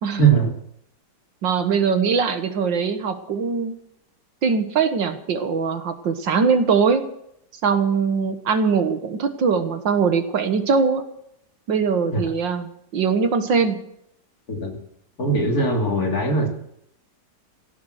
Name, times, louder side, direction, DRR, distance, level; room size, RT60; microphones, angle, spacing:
voice 1, 0.2-0.5 12.1-12.2 14.5-14.8 15.2-16.5, right 4 dB, 55° left, 2 dB, 3.1 m, -20 dB
voice 2, 1.4-3.7 4.4-7.0 7.6-11.0 11.7-13.8, right 5 dB, 80° right, 8 dB, 2.1 m, -21 dB
17.0 x 11.0 x 6.5 m, 0.74 s
omnidirectional pair, 2.0 m